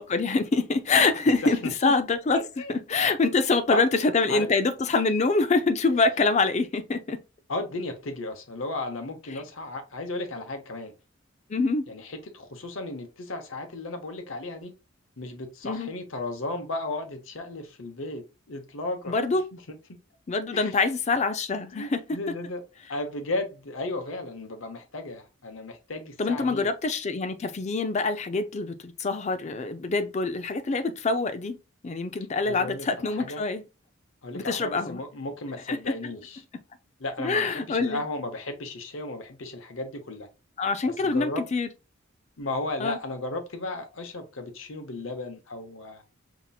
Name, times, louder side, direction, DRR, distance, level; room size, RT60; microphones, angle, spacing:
voice 1, 0.0-2.4 2.7-7.2 11.5-11.9 15.6-15.9 19.1-19.5 20.3-22.0 26.2-31.6 31.8-33.6 34.3-35.0 35.7-35.9 37.2-38.0 40.6-41.7 42.8-43.0, left 3 dB, 35° left, 0.4 m, -25 dB
voice 2, 1.6-1.9 2.3-2.7 3.7-4.0 4.3-4.5 5.9-6.0 7.5-10.9 11.9-14.7 15.2-19.6 20.5-20.8 21.6-22.6 22.9-26.7 32.4-33.4 34.2-36.4 37.0-40.3 40.8-41.4 42.4-46.0, left 2 dB, 75° left, 0.9 m, -35 dB
5.4 x 2.9 x 2.3 m
head